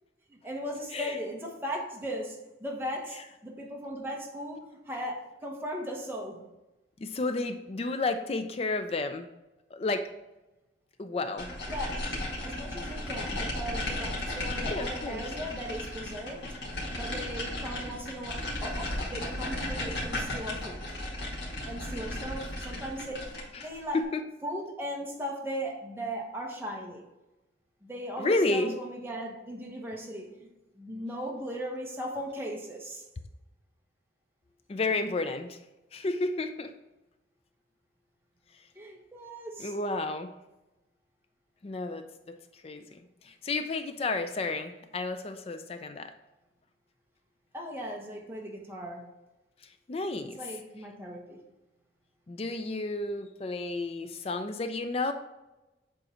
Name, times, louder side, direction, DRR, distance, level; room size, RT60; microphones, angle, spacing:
voice 1, 0.3-6.5 11.7-12.1 12.4-16.5 17.0-20.9 21.7-23.2 23.6-24.0 24.4-27.0 27.8-30.5 30.8-33.0 38.7-39.7 47.5-49.1 50.2-51.4, equal, 10° right, -1 dB, 1.1 m, -38 dB
voice 2, 7.0-9.3 9.7-10.0 11.0-11.6 14.7-15.2 23.5-23.7 23.9-24.2 28.2-28.7 34.7-35.6 35.9-36.7 39.6-40.3 41.6-42.4 42.6-42.8 43.2-46.1 49.9-50.4 52.3-55.1, left 2 dB, 30° left, 9 dB, 0.4 m, -31 dB
sound 1, 11.4-23.7, left 1 dB, 70° left, 1.9 m, -35 dB
7.7 x 3.8 x 4.3 m, 1.0 s
head